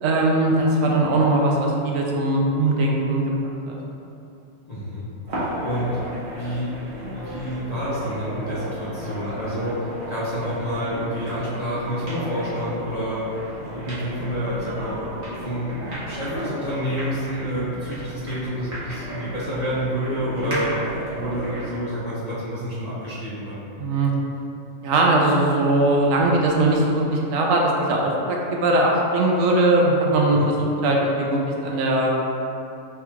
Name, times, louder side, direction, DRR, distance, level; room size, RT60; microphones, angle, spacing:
voice 1, 0.0-3.8 20.5-20.7 23.8-24.1 24.8-32.1, right 2 dB, 75° right, -2 dB, 1.0 m, -20 dB
voice 2, 4.7-5.1 5.3-6.0 6.3-6.7 7.1-13.3 13.7-20.7 21.1-23.6 30.3-30.5, equal, 35° left, -10 dB, 0.7 m, -29 dB
sound 1, 5.3-21.8, right 1 dB, 55° right, 1.2 m, -34 dB
3.4 x 2.3 x 4.4 m, 2.8 s
omnidirectional pair, 1.4 m